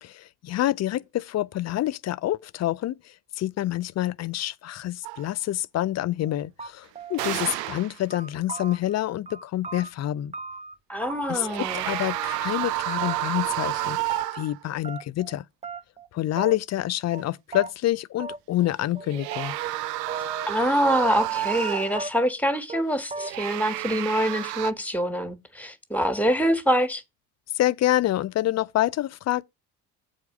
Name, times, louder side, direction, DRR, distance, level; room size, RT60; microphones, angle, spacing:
voice 1, 0.0-10.3 11.3-15.5 16.1-19.6 27.5-29.4, left 14 dB, 35° left, 0.5 m, -27 dB
sound 1, 5.0-5.3 7.1-8.0 11.3-14.6 19.0-22.1 23.2-24.7, right 16 dB, 80° right, 0.6 m, -30 dB
sound 2, 6.2-6.3 6.6-7.8 8.1-9.0 9.3-10.7 11.1-11.6 11.9-12.7 13.0-13.5 13.7-14.5 14.8-15.4 15.6-16.1 16.4-16.8 17.1-17.2 17.5-17.7 18.2-18.7 18.9-20.6 20.8-21.7 22.0-22.4 22.7-22.8 23.1-23.6, right 3 dB, 15° right, 0.6 m, -38 dB
voice 2, 10.9-11.8 20.5-27.0, equal, 5° left, 1.4 m, -25 dB
7.8 x 4.6 x 6.0 m
figure-of-eight pair, 50°, 48 cm